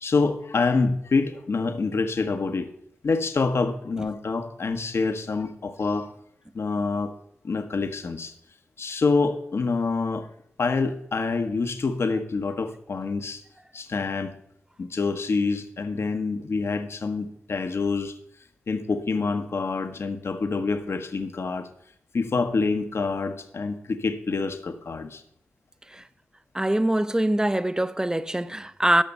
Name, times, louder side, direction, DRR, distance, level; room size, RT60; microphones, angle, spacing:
voice 1, 0.0-2.7 3.0-6.1 6.5-7.1 7.4-8.3 8.8-10.3 10.6-13.4 13.7-14.3 14.8-18.2 18.7-21.7 22.1-25.2, left 4 dB, 60° left, 0.9 m, -26 dB
voice 2, 26.5-29.0, right 1 dB, 15° right, 0.6 m, -23 dB
12.5 x 5.8 x 5.3 m
cardioid pair, 45°, 5 cm